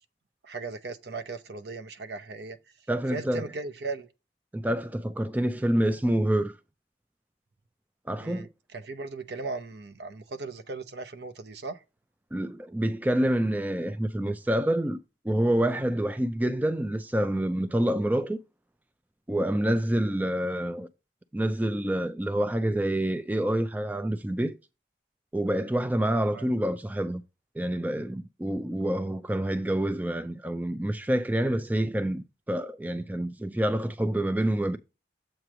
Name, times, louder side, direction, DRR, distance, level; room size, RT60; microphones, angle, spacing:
voice 1, 0.4-2.6 3.1-4.1 8.2-11.8 26.3-26.5, right 3 dB, 60° right, 0.7 m, -37 dB
voice 2, 2.9-3.5 4.5-6.5 8.1-8.5 12.3-15.0 15.2-18.4 19.3-20.9 21.3-24.5 25.3-27.2 27.6-34.8, right 1 dB, 10° right, 0.3 m, -27 dB
7.5 x 3.1 x 6.0 m
head